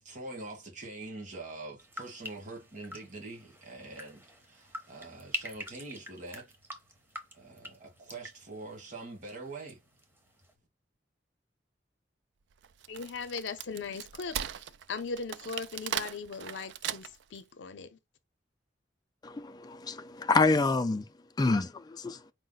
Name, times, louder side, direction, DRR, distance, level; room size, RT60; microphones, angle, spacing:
voice 1, 0.0-6.5 7.3-9.8, right 2 dB, 45° right, 1.5 m, -44 dB
sound 1, 1.8-9.7 10.0-10.5, left 1 dB, 10° right, 0.7 m, -45 dB
Wood, 12.6-17.4, right 10 dB, 75° right, 0.3 m, -38 dB
voice 2, 12.9-14.4 14.9-18.0, left 4 dB, 80° left, 0.6 m, -38 dB
voice 3, 19.2-21.0 21.4-22.2, left 3 dB, 20° left, 0.3 m, -27 dB
4.8 x 2.1 x 3.9 m
head